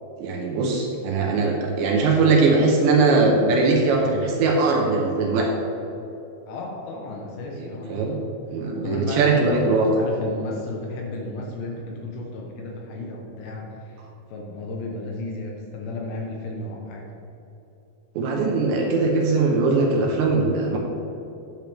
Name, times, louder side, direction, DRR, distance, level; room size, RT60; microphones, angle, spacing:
voice 1, 0.2-5.5 7.6-8.2 8.5-10.0 18.2-20.8, right 3 dB, 75° right, 0 dB, 2.9 m, -20 dB
voice 2, 6.5-8.3 8.7-14.0 14.3-17.1, left 2 dB, 75° left, -1 dB, 2.9 m, -33 dB
9.1 x 9.1 x 3.4 m, 3.0 s
omnidirectional pair, 5.6 m